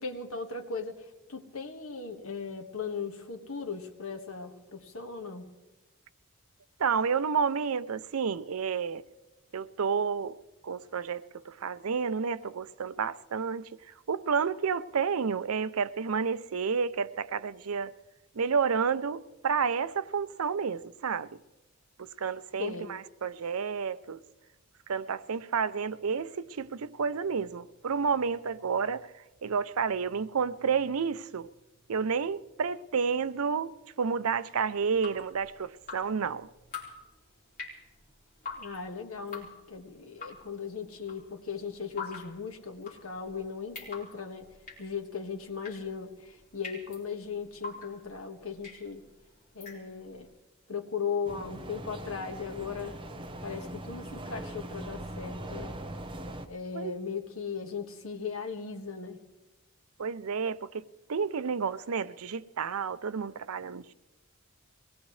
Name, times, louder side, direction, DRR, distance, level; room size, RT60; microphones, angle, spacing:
voice 1, 0.0-5.5 22.6-22.9 38.6-44.5 44.8-49.0 49.5-50.3 50.7-53.0 53.4-55.7 56.4-59.2, left 5 dB, 75° left, 1.6 m, -38 dB
voice 2, 6.8-9.0 9.5-10.4 10.6-13.7 14.1-17.9 18.3-21.4 22.2-24.2 24.9-29.1 29.4-31.5 31.9-36.5 56.7-57.0 60.0-63.9, right 6 dB, 85° right, 0.6 m, -30 dB
Drip, 34.8-50.2, left 4 dB, 40° left, 4.1 m, -46 dB
sound 1, 51.2-56.5, right 1 dB, 25° right, 0.9 m, -41 dB
23.0 x 19.0 x 3.2 m
head